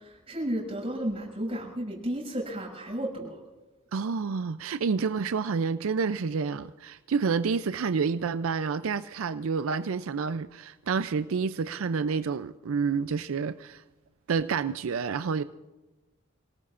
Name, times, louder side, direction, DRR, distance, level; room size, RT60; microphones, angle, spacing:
voice 1, 0.0-3.4, right 1 dB, 30° right, 7.0 m, -33 dB
voice 2, 3.9-13.8 14.3-15.4, right 5 dB, 90° right, 0.4 m, -29 dB
27.5 x 18.5 x 2.5 m
head